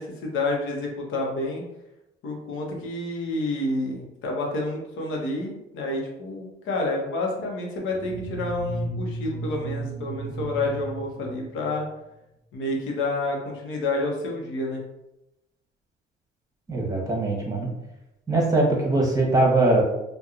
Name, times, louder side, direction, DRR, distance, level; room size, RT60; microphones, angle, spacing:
voice 1, 0.0-1.6 2.2-11.9 12.5-14.8, left 2 dB, 80° left, 0 dB, 0.8 m, -29 dB
sound 1, 7.9-12.0, right 1 dB, 80° right, 0.5 m, -34 dB
voice 2, 16.7-17.7 18.3-19.8, right 2 dB, 15° right, -1 dB, 0.9 m, -21 dB
2.8 x 2.2 x 2.4 m, 0.90 s
cardioid pair, 90°, 20 cm